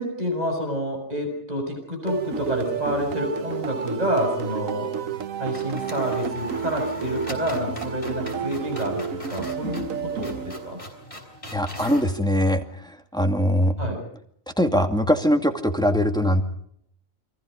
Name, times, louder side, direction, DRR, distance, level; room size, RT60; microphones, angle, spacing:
voice 1, 0.0-4.9 5.4-10.8 13.8-14.0, equal, 30° right, 3 dB, 6.7 m, -28 dB
sound 1, 2.1-11.0, right 7 dB, 80° right, 1.6 m, -31 dB
sound 2, 2.4-3.2 3.5-3.6 5.1-5.3 5.5-12.1, left 1 dB, 25° left, 5.0 m, -41 dB
voice 2, 11.5-13.8 14.6-16.4, equal, 5° left, 5 dB, 2.3 m, -22 dB
29.5 x 24.0 x 5.2 m, 0.67 s
omnidirectional pair, 1.4 m